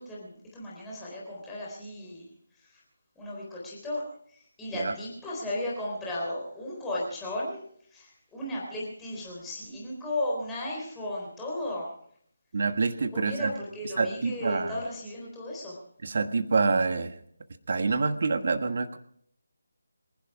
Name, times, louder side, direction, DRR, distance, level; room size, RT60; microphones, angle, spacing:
voice 1, 0.0-2.8 3.2-11.9 13.1-15.8, left 1 dB, 5° left, -6 dB, 4.0 m, -35 dB
voice 2, 12.5-13.5 14.0-14.8 16.0-17.1 17.7-19.0, right 4 dB, 45° right, 9 dB, 1.4 m, -26 dB
25.5 x 11.5 x 4.8 m, 0.65 s
figure-of-eight pair, 155°, 0 cm